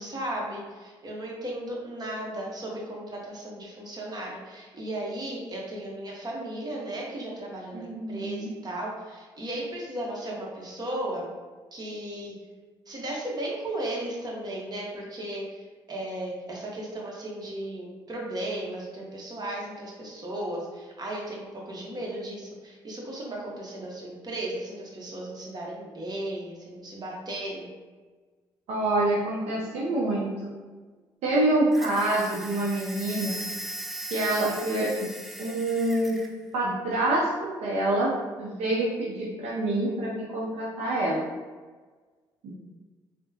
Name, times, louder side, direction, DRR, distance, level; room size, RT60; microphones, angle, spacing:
voice 1, 0.0-11.2 11.7-12.4 12.9-27.7, right 1 dB, 35° right, -3 dB, 1.0 m, -35 dB
voice 2, 7.7-8.5 28.7-30.5 31.2-33.4 34.1-34.9 35.4-36.2 36.5-38.1 38.4-41.2 42.4-42.5, right 1 dB, 70° right, -5 dB, 0.6 m, -26 dB
sound 1, 31.7-36.3, right 1 dB, ahead, 0.4 m, -38 dB
3.5 x 2.1 x 2.7 m, 1.4 s
hypercardioid pair, 50°, 11 cm